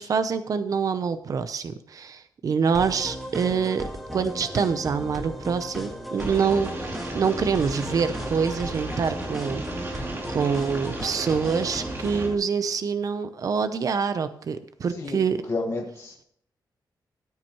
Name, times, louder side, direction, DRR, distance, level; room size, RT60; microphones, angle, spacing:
voice 1, 0.0-10.0 10.3-15.4, right 6 dB, 50° right, 11 dB, 0.7 m, -26 dB
sound 1, 2.7-12.3, equal, ahead, 1.6 m, -36 dB
sound 2, 6.2-12.3, right 2 dB, 30° right, 2.8 m, -35 dB
voice 2, 15.5-16.2, left 3 dB, 35° left, 0 dB, 1.4 m, -30 dB
14.0 x 9.1 x 3.0 m, 0.67 s
wide cardioid pair, 170°, 8 cm